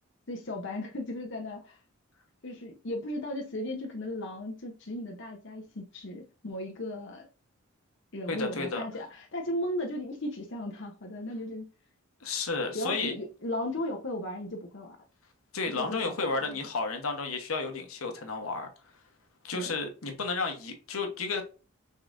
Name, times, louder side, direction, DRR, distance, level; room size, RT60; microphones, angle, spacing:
voice 1, 0.3-1.8 2.4-7.3 8.1-11.7 12.7-15.0 15.8-16.6 19.5-19.7, left 1 dB, 60° left, 0.9 m, -36 dB
voice 2, 8.3-8.8 12.2-13.1 15.5-18.7 19.4-21.4, left 4 dB, 90° left, 1.1 m, -32 dB
5.4 x 3.7 x 2.6 m
head